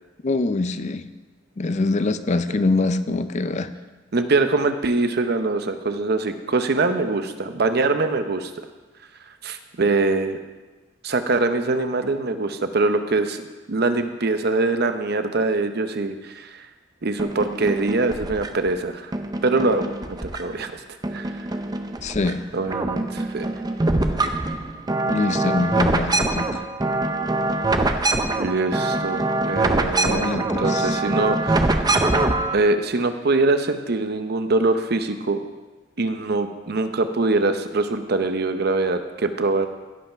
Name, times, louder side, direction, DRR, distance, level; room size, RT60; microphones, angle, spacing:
voice 1, 0.2-1.1 1.6-3.7 22.0-22.4 25.0-26.6 30.0-31.0, left 3 dB, 40° left, 11 dB, 0.5 m, -24 dB
voice 2, 4.1-8.5 9.4-10.4 11.0-13.4 13.7-16.7 17.0-19.1 19.4-20.8 21.1-21.5 22.5-23.5 28.4-31.7 32.5-35.4 36.0-39.7, right 3 dB, 55° right, 8 dB, 0.8 m, -23 dB
sound 1, 17.2-18.7 19.1-20.7 21.0-22.3 22.6-32.6, right 2 dB, 20° right, 0.6 m, -24 dB
16.0 x 5.6 x 5.7 m, 1.2 s
head